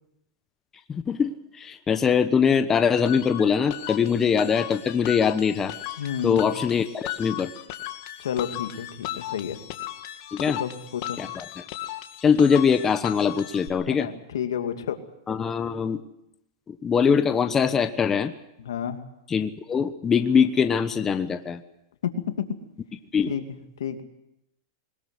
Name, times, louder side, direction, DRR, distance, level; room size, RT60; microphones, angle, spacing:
voice 1, 0.9-5.7 6.2-7.5 10.3-10.6 11.2-11.6 12.2-14.1 15.3-16.0 16.7-18.3 19.3-21.6 23.1-23.3, left 6 dB, 20° left, 9 dB, 1.1 m, -22 dB
sound 1, 3.0-13.7, left 14 dB, 50° left, 2.2 m, -37 dB
voice 2, 6.0-6.4 8.2-9.6 10.6-11.2 13.9-15.0 18.6-19.0 22.4-22.5 23.3-23.4 23.8-24.0, left 9 dB, 85° left, 6 dB, 2.5 m, -30 dB
21.5 x 20.5 x 7.9 m, 0.81 s
hypercardioid pair, 140°, 2 cm